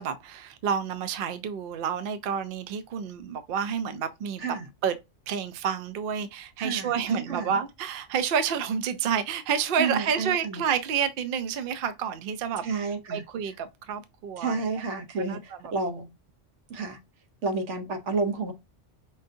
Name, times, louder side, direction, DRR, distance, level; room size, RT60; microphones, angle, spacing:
voice 1, 0.0-4.4 4.8-5.0 5.3-12.8 13.1-14.6 15.2-15.7, right 7 dB, 60° right, 0.6 m, -29 dB
voice 2, 4.4-4.7 6.6-7.5 9.8-10.6 12.6-13.2 14.4-16.1 16.7-17.0 17.4-18.5, right 4 dB, 75° right, 1.1 m, -30 dB
5.4 x 2.6 x 2.6 m
omnidirectional pair, 1.2 m